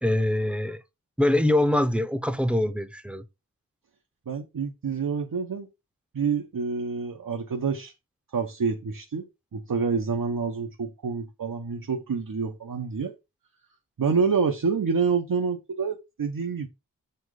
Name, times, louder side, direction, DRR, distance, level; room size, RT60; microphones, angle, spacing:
voice 1, 0.0-0.8 1.2-3.2, left 1 dB, 5° right, 0.7 m, -24 dB
voice 2, 4.3-5.7 6.1-7.9 8.3-13.2 14.0-16.7, right 5 dB, 85° right, 1.0 m, -27 dB
7.3 x 4.5 x 4.8 m
wide cardioid pair, 85°, 33 cm